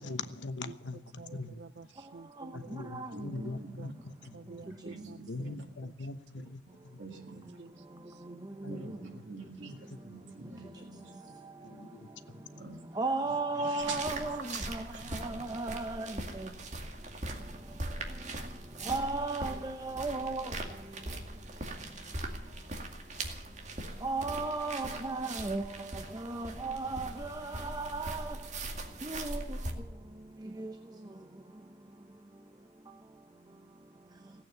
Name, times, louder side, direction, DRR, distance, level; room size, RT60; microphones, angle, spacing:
voice 1, 0.0-1.6 2.5-4.8 5.3-7.0 8.6-9.2 9.9-10.0 11.6-12.4, left 3 dB, 80° left, 11 dB, 1.1 m, -42 dB
voice 2, 1.2-3.0 3.8-3.9 4.3-6.1 6.4-6.5 7.6-8.3, right 4 dB, 65° right, 14 dB, 0.5 m, -51 dB
voice 3, 3.1-3.9 4.8-5.6 7.0-7.5 8.7-11.4 11.7-11.9 12.3-12.8 13.2-15.4, right 3 dB, 85° right, 1 dB, 2.1 m, -46 dB
voice 4, 13.0-14.4 14.7-14.8 15.2-16.1 18.9-20.4 24.0-25.6 26.3-27.1 27.7-28.2 29.1-29.4, right 3 dB, 20° right, 7 dB, 0.8 m, -34 dB
sound 1, 13.8-29.7, right 2 dB, 40° right, 2.2 m, -41 dB
17.0 x 8.8 x 9.4 m, 0.87 s
head